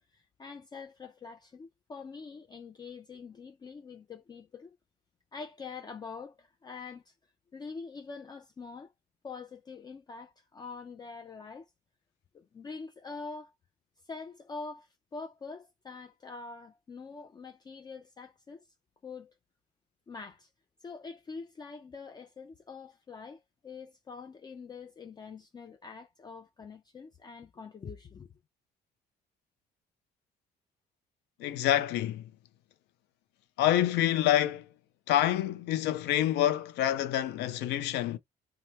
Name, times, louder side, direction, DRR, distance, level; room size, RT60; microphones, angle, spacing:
voice 1, 0.1-4.8 5.3-7.1 7.5-8.9 9.2-11.7 12.3-13.5 14.0-18.6 19.0-19.3 20.1-20.5 20.8-28.3, left 4 dB, 25° left, 0.4 m, -45 dB
voice 2, 31.4-32.2 33.6-34.7 35.1-38.2, left 12 dB, 85° left, 0.5 m, -27 dB
3.2 x 2.1 x 2.8 m
cardioid pair, 110°, 17 cm